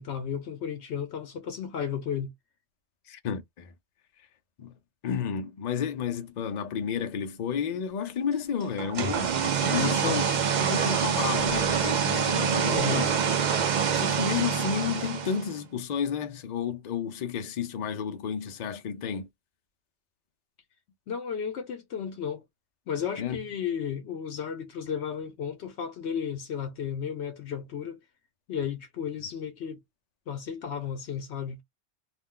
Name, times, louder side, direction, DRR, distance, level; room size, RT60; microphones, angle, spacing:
voice 1, 0.0-2.3 9.7-10.2 12.7-13.1 21.1-22.4 22.9-28.0 28.5-29.8 30.3-31.6, left 7 dB, 70° left, 0.9 m, -33 dB
voice 2, 3.1-3.7 4.2-4.3 4.6-4.8 5.0-10.2 10.6-13.1 14.0-19.3 23.2-23.5, left 7 dB, 50° left, 0.5 m, -31 dB
sound 1, 8.8-15.6, right 7 dB, 50° right, 0.6 m, -26 dB
2.5 x 2.1 x 3.6 m
omnidirectional pair, 1.2 m